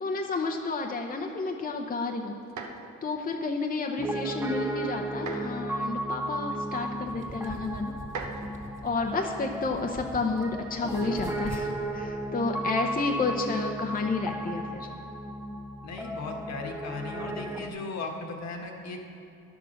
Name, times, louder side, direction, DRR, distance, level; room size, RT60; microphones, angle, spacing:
voice 1, 0.0-2.3 3.0-7.9 8.8-14.9, left 3 dB, 30° left, 2 dB, 0.8 m, -31 dB
sound 1, 2.4-3.0 5.1-5.7 6.7-6.8 8.0-8.7 11.0-11.4 12.6-13.0, right 4 dB, 75° right, 1.1 m, -40 dB
Piano, 4.0-17.7, right 1 dB, 5° right, 0.7 m, -35 dB
sound 2, 7.1-10.5 10.8-11.7, right 2 dB, 25° right, 2.1 m, -44 dB
voice 2, 15.8-19.0, left 3 dB, 60° left, 2 dB, 1.5 m, -37 dB
10.5 x 7.0 x 6.4 m, 2.6 s
cardioid pair, 90°, 30 cm